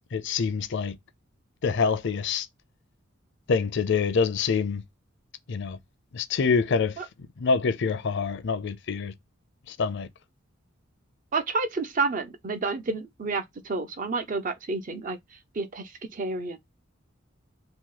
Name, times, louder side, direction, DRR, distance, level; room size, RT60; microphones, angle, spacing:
voice 1, 0.1-1.0 1.6-2.5 3.5-4.8 5.5-5.8 6.1-6.9 7.4-9.1 9.7-10.1, left 5 dB, 65° left, 0.5 m, -26 dB
voice 2, 11.3-15.2 15.6-16.6, right 3 dB, 40° right, 0.5 m, -30 dB
2.9 x 2.7 x 3.8 m
head